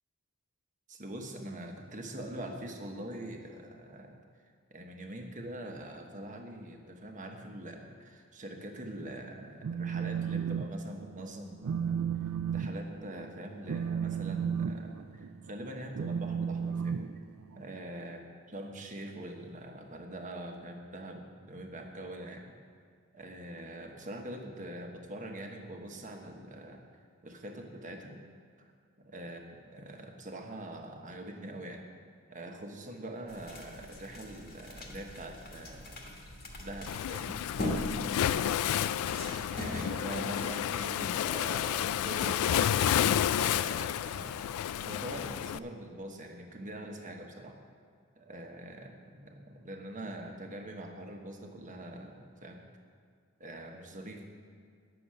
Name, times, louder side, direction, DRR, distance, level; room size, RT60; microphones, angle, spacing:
voice 1, 0.9-4.2 4.7-12.0 12.5-17.1 17.6-18.2 18.5-22.5 23.1-26.8 27.2-28.3 28.6-28.7 29.0-31.9 32.3-36.1 36.6-37.4 38.3-38.5 39.5-42.7 43.4-47.6 48.2-52.6 53.4-54.2, right 1 dB, 35° right, 3 dB, 1.2 m, -43 dB
Telephone, 9.4-10.7 11.0-11.3 11.6-17.7, right 7 dB, 65° right, 0.4 m, -34 dB
sound 1, 33.3-39.9, left 1 dB, 45° left, 1.6 m, -40 dB
Waves surf, 36.9-45.6, left 10 dB, 70° left, 0.3 m, -30 dB
9.9 x 6.9 x 7.6 m, 2.1 s
head